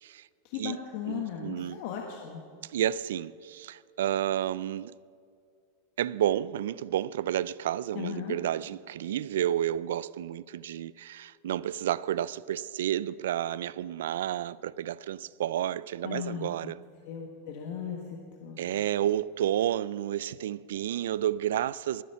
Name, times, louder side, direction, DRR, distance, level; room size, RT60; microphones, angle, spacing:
voice 1, 0.4-2.4 7.9-8.4 16.0-16.5 17.0-18.6, left 9 dB, 55° left, 1.5 m, -37 dB
voice 2, 1.1-1.8 2.7-4.9 6.0-16.8 18.6-22.0, right 11 dB, 90° right, 0.3 m, -31 dB
20.5 x 8.4 x 5.7 m
supercardioid pair, 160°, 0 cm